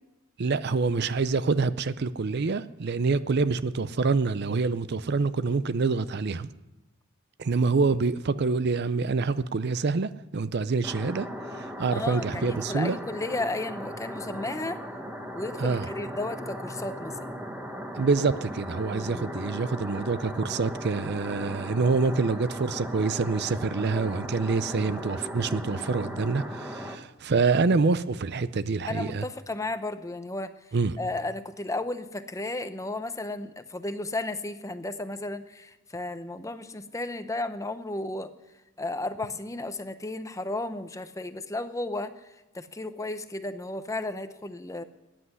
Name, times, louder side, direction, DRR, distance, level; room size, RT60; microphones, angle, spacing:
voice 1, 0.4-6.5 7.4-11.3 11.6-13.0 15.6-15.9 17.9-29.2 30.7-31.0, right 4 dB, 50° right, 0.5 m, -26 dB
sound 1, 10.8-27.0, equal, 5° right, 1.3 m, -37 dB
voice 2, 11.9-14.8 15.3-17.3 18.9-19.3 28.9-30.5 31.0-38.3 38.8-42.1 42.5-44.8, left 2 dB, 15° left, 0.7 m, -34 dB
13.5 x 10.0 x 9.6 m
head